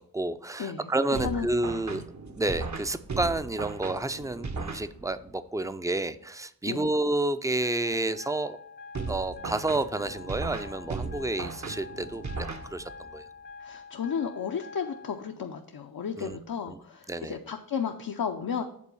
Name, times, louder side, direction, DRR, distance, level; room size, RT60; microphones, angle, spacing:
voice 1, 0.0-2.0 2.4-8.6 9.1-13.2 16.2-16.4 16.7-16.8 17.1-17.4, right 2 dB, 10° right, 12 dB, 0.5 m, -30 dB
voice 2, 0.6-0.9 1.2-1.5 2.0-2.1 6.7-6.8 13.6-18.6, left 7 dB, 70° left, 4 dB, 0.7 m, -33 dB
sound 1, 1.1-5.3 8.9-13.2, right 4 dB, 50° right, 1.0 m, -37 dB
sound 2, 7.6-15.2, left 5 dB, 30° left, 0.7 m, -46 dB
8.5 x 3.8 x 7.0 m, 0.68 s
cardioid pair, 55°, 37 cm